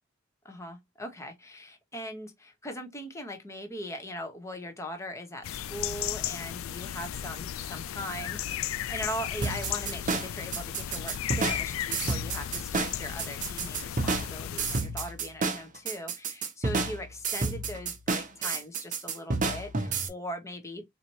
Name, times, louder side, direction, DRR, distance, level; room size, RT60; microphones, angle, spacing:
voice 1, 0.4-20.8, equal, 15° left, 0.9 m, -40 dB
sound 1, 5.4-14.8, left 11 dB, 75° left, 0.3 m, -35 dB
sound 2, 9.4-20.1, right 3 dB, 40° right, 0.7 m, -30 dB
4.1 x 2.8 x 3.0 m
head